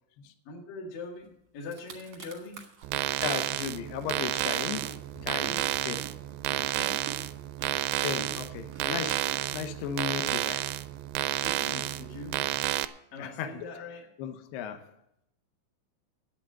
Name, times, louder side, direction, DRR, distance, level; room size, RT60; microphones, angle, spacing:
voice 1, 0.5-2.6 5.4-5.8 6.7-7.2 11.4-12.5 13.1-14.0, left 3 dB, 55° left, -1 dB, 2.8 m, -42 dB
sound 1, 1.3-1.4 1.6-2.9 3.3-10.1, right 6 dB, 65° right, 1.6 m, -48 dB
sound 2, 2.8-12.9, right 15 dB, 85° right, 2.6 m, -31 dB
voice 2, 3.2-4.9 5.2-6.0 8.0-10.7 13.2-13.7 14.2-14.9, left 7 dB, 80° left, 7 dB, 2.4 m, -36 dB
8.8 x 8.6 x 9.4 m, 0.80 s
omnidirectional pair, 5.7 m